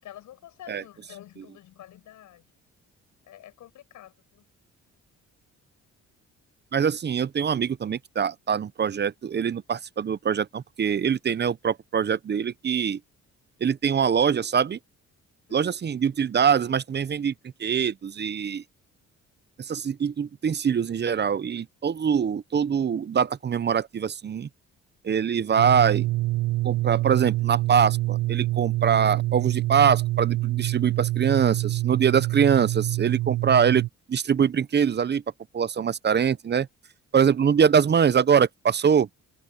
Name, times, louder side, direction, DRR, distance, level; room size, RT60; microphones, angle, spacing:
voice 1, 0.0-2.4 3.2-4.4 15.5-15.7, left 12 dB, 80° left, 6.3 m, -48 dB
voice 2, 6.7-13.0 13.6-14.8 15.5-17.3 17.6-18.6 19.6-24.5 25.0-26.1 26.6-33.8 34.1-35.2 35.5-36.7 37.1-39.1, right 7 dB, 35° right, 0.7 m, -23 dB
sound 1, 25.6-33.9, right 18 dB, 85° right, 0.5 m, -26 dB
open air
cardioid pair, 90°, 30 cm